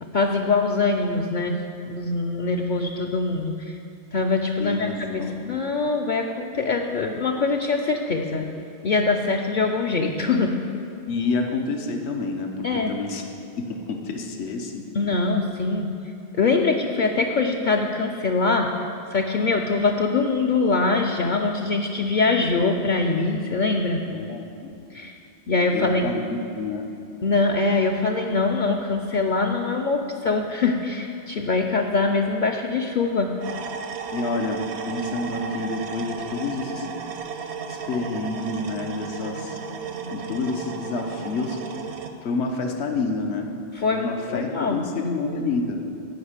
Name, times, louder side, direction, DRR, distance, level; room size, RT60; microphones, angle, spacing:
voice 1, 0.0-3.8 4.1-8.4 8.8-10.6 12.6-13.0 14.9-15.9 16.3-18.7 19.1-24.0 24.9-25.1 25.5-26.1 27.2-33.3 43.7-44.8, left 3 dB, 55° left, 1 dB, 0.6 m, -23 dB
voice 2, 4.6-5.3 11.1-13.2 13.6-14.8 24.1-24.7 25.7-26.8 34.1-36.9 37.7-39.6 40.1-41.6 42.2-43.5 43.9-45.8, left 3 dB, 80° left, 3 dB, 1.2 m, -28 dB
sound 1, 33.4-42.1, right 5 dB, 85° right, 1.0 m, -34 dB
9.4 x 5.1 x 8.0 m, 2.7 s
omnidirectional pair, 1.1 m